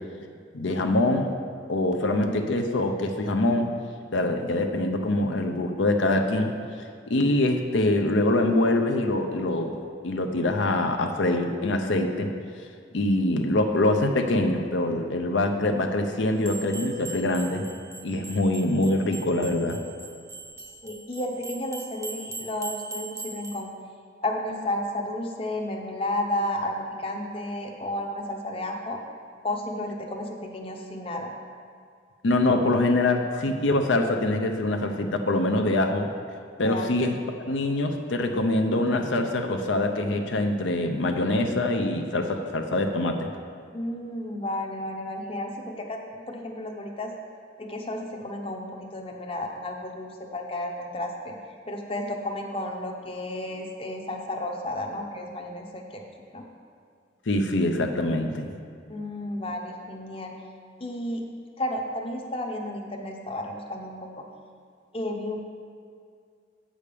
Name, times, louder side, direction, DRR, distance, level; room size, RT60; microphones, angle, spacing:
voice 1, 0.5-1.3 1.7-3.7 4.1-6.5 7.1-9.8 10.0-12.3 12.9-17.7 18.0-19.8 32.2-36.1 36.6-37.1 37.5-43.2 57.3-58.5, left 2 dB, 80° left, 5 dB, 0.7 m, -24 dB
sound 1, 16.4-23.6, right 3 dB, 15° right, 0.6 m, -40 dB
voice 2, 20.8-23.7 24.2-29.0 29.4-31.3 36.6-36.9 43.7-47.1 47.6-51.4 51.7-56.0 56.3-56.4 58.9-60.4 60.8-61.3 61.6-64.2 64.9-65.4, left 1 dB, 30° left, 2 dB, 0.7 m, -32 dB
8.4 x 5.1 x 6.8 m, 2.2 s
head